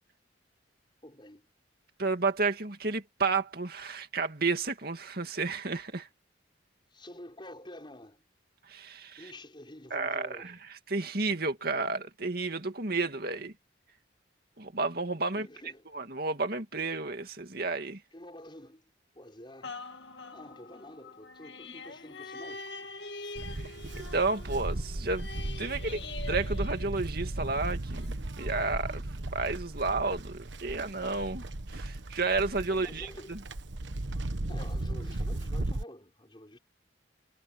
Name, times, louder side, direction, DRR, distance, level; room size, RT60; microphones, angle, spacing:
voice 1, 1.0-1.5 6.9-8.2 9.2-10.6 15.3-15.9 18.1-18.8 19.1-19.8 20.3-22.9 32.7-33.4 34.5-36.6, left 1 dB, 25° left, 6.1 m, -48 dB
voice 2, 2.0-6.1 8.7-9.2 9.9-10.5 10.9-13.5 14.6-15.5 15.9-18.0 23.6-25.3 25.6-29.0 29.3-33.4, right 3 dB, 50° right, 2.4 m, -32 dB
sound 1, 19.6-27.5 28.0-28.1, left 3 dB, 65° left, 2.2 m, -44 dB
Livestock farm animals working animals, 23.4-35.8, right 1 dB, 70° right, 1.2 m, -36 dB
head